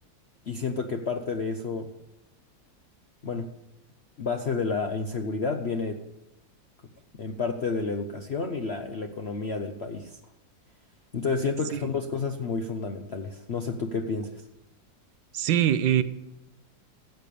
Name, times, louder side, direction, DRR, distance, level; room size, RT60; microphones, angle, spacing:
voice 1, 0.5-1.9 3.2-3.5 4.2-6.0 7.1-10.2 11.1-14.3, left 4 dB, 55° left, 6 dB, 0.7 m, -30 dB
voice 2, 15.3-16.0, right 10 dB, 75° right, 13 dB, 1.4 m, -22 dB
14.5 x 8.7 x 6.8 m, 0.92 s
omnidirectional pair, 2.1 m